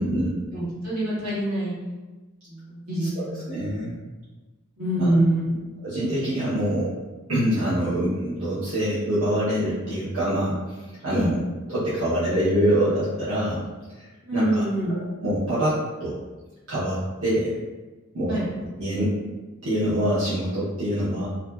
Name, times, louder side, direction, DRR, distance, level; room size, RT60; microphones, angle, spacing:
voice 1, 0.0-0.4 3.0-4.0 5.0-5.1 5.8-6.9 7.3-10.8 11.0-11.4 11.7-13.6 14.0-14.1 14.3-16.2 16.7-17.6 18.1-18.4 18.8-19.2 19.6-21.2, equal, 70° right, -11 dB, 0.8 m, -25 dB
voice 2, 0.5-1.7 2.5-3.9 4.8-5.7 11.1-11.3 14.2-14.9 18.3-18.5, right 1 dB, 85° right, -8 dB, 1.2 m, -25 dB
2.8 x 2.4 x 2.2 m, 1.2 s
head